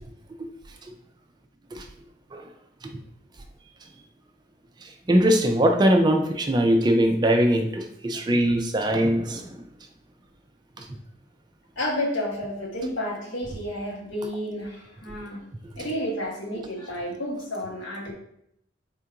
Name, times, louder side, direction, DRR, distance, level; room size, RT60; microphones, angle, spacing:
voice 1, 5.1-9.5, equal, 20° right, 5 dB, 0.3 m, -21 dB
voice 2, 11.8-15.4 15.8-18.1, left 1 dB, 80° left, -2 dB, 1.2 m, -31 dB
3.6 x 2.5 x 4.5 m, 0.73 s
head